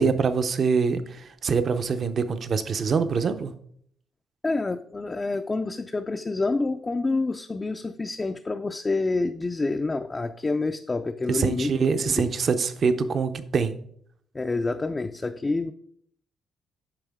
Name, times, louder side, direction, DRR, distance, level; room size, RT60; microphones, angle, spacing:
voice 1, 0.0-3.5 11.3-13.7, right 5 dB, 50° right, 10 dB, 0.7 m, -24 dB
voice 2, 4.4-12.3 14.3-15.7, left 3 dB, 25° left, 6 dB, 0.4 m, -28 dB
9.0 x 5.5 x 3.6 m, 0.65 s
cardioid pair, 90°, 0 cm